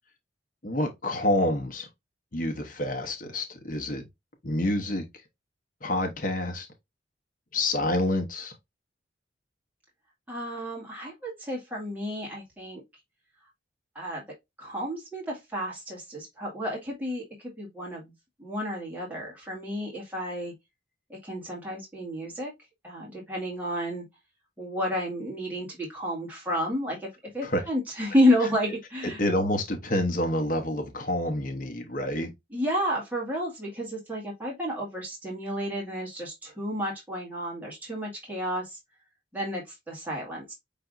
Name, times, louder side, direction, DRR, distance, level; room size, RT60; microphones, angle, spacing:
voice 1, 0.6-1.9 2.3-4.1 4.4-5.1 5.8-6.7 7.5-8.5 27.4-27.6 29.2-32.3, left 1 dB, 45° left, 0.9 m, -28 dB
voice 2, 10.3-12.8 14.0-14.2 14.6-17.2 17.6-18.1 18.4-20.5 21.1-22.5 22.8-24.0 24.6-27.1 27.3-29.2 32.5-38.8 39.3-40.5, equal, 10° right, 1.9 m, -30 dB
5.7 x 3.4 x 2.5 m
head